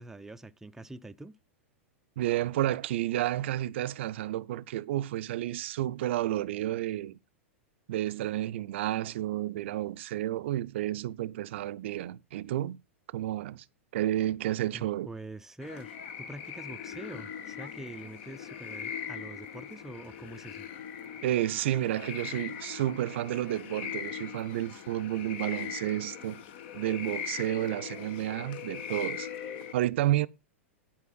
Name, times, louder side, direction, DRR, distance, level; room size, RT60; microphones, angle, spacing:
voice 1, 0.0-1.3 14.7-20.7, right 2 dB, 5° right, 0.5 m, -45 dB
voice 2, 2.2-7.2 7.9-12.8 13.1-13.6 13.9-15.1 21.2-26.4 26.7-29.3 29.7-30.3, right 14 dB, 60° right, 0.5 m, -31 dB
sound 1, 15.6-29.7, left 8 dB, 55° left, 1.3 m, -40 dB
11.5 x 4.9 x 5.7 m
figure-of-eight pair, 95°, 7 cm